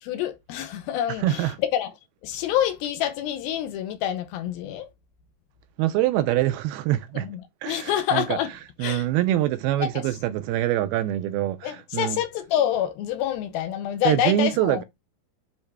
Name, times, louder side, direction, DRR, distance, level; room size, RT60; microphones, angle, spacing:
voice 1, 0.0-1.9 2.2-4.9 7.1-8.5 8.8-9.1 9.8-10.0 11.6-14.8, left 10 dB, 75° left, 2.4 m, -27 dB
voice 2, 5.8-7.3 7.6-8.4 8.8-12.2 14.1-14.8, right 14 dB, 85° right, 2.3 m, -24 dB
9.7 x 3.7 x 3.3 m
omnidirectional pair, 4.7 m